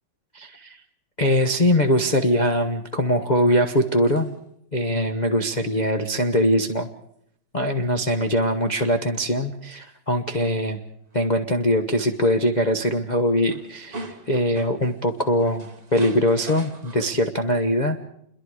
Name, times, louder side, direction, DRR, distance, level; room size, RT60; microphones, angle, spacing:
voice 1, 0.3-0.8 1.2-4.3 4.7-6.9 7.5-10.8 11.1-18.0, equal, 30° left, 2 dB, 0.9 m, -22 dB
sound 1, 3.8-4.4 9.9-10.0 11.1-11.3 11.6-12.4 12.8-13.0 13.3-17.1, right 2 dB, 20° right, 1.4 m, -42 dB
28.5 x 22.5 x 4.9 m, 0.72 s
omnidirectional pair, 2.4 m